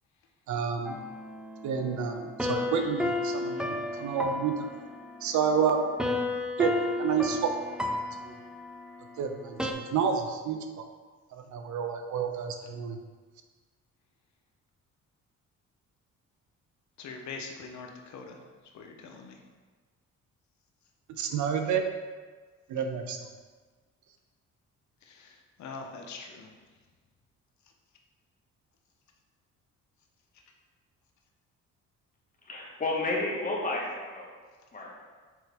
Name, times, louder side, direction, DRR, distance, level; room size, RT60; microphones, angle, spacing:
voice 1, 0.5-1.0 1.6-4.7 5.2-5.8 6.6-6.7 7.0-7.5 8.2-8.3 9.2-10.8 11.3-13.0 21.2-21.9 22.7-23.2, right 7 dB, 70° right, 6 dB, 0.7 m, -29 dB
sound 1, 0.8-9.7, left 2 dB, 5° right, 0.5 m, -33 dB
voice 2, 17.0-18.4 18.7-19.4 25.0-26.5, left 4 dB, 70° left, 2 dB, 0.9 m, -43 dB
voice 3, 32.5-34.3 34.7-34.9, left 2 dB, 25° left, -3 dB, 1.6 m, -31 dB
6.2 x 4.5 x 3.4 m, 1.4 s
cardioid pair, 90°, 30 cm